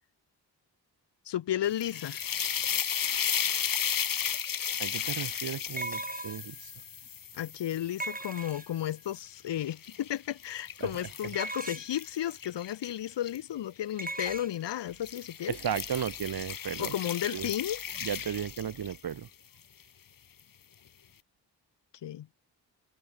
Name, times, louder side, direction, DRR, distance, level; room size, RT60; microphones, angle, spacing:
voice 1, 1.3-2.2 7.3-15.6 16.8-17.8 22.0-22.3, left 11 dB, 70° left, 0.9 m, -33 dB
sound 1, 1.6-8.9 9.4-13.4 14.3-14.5 14.9-19.1, left 8 dB, 50° left, 1.1 m, -35 dB
sound 2, 4.2-4.3 5.8-6.6 8.0-8.9 11.3-12.0 14.0-14.5, right 2 dB, 20° right, 4.0 m, -38 dB
voice 2, 4.8-6.7 10.8-10.9 15.5-16.9 17.3-17.5 18.0-19.3, right 8 dB, 55° right, 1.1 m, -35 dB
supercardioid pair, 50°, 44 cm